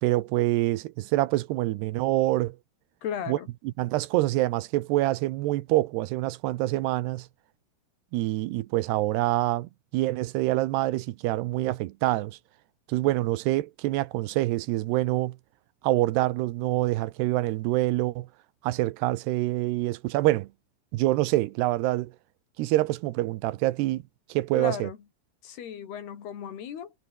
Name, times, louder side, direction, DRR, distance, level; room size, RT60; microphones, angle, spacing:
voice 1, 0.0-2.6 3.3-3.4 3.8-7.3 8.1-12.4 12.9-15.4 15.8-18.3 18.6-20.5 20.9-22.1 22.6-24.0 24.3-24.9, right 17 dB, 90° right, 2.9 m, -26 dB
voice 2, 3.0-3.5 24.6-25.0 25.4-26.9, left 9 dB, 70° left, 5.2 m, -35 dB
omnidirectional pair, 4.8 m